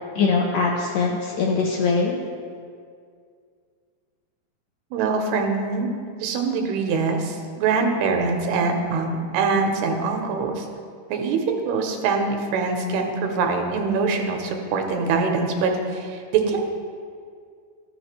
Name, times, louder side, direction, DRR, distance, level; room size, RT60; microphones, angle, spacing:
voice 1, 0.2-2.2, left 4 dB, 80° left, -2 dB, 1.9 m, -22 dB
voice 2, 4.9-5.9 6.2-10.7 11.1-16.6, right 4 dB, 90° right, 3 dB, 2.8 m, -23 dB
13.5 x 6.4 x 3.2 m, 2.2 s
omnidirectional pair, 4.5 m